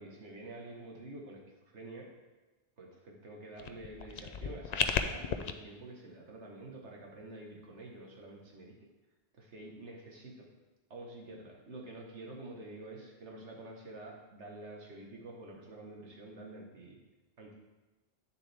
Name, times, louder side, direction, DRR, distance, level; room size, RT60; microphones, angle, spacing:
voice 1, 0.0-2.1 2.8-8.8 9.4-10.5 10.9-17.0 17.4-17.6, right 2 dB, 90° right, 0 dB, 1.7 m, -48 dB
sound 1, 3.6-5.5, left 6 dB, 55° left, 0.5 m, -34 dB
9.3 x 7.1 x 3.4 m, 1.2 s
omnidirectional pair, 1.1 m